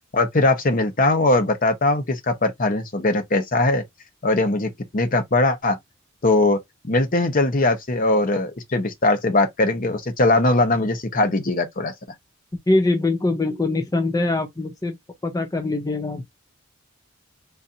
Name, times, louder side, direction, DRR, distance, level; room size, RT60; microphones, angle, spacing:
voice 1, 0.1-3.8 4.2-5.8 6.2-6.6 6.8-11.9, left 2 dB, 45° left, 0.9 m, -20 dB
voice 2, 12.7-15.0 15.2-16.2, left 2 dB, 15° left, 0.6 m, -22 dB
4.0 x 2.6 x 2.6 m
head